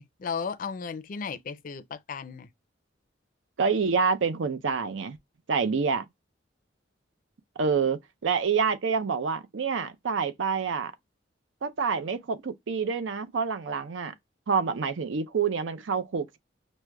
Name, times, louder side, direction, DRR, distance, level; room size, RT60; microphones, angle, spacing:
voice 1, 0.0-2.5, left 5 dB, 45° left, 0.4 m, -35 dB
voice 2, 3.6-5.2 5.5-6.1 7.6-10.9 11.6-14.1 14.5-16.4, right 5 dB, 90° right, 0.5 m, -27 dB
6.0 x 2.1 x 2.2 m
head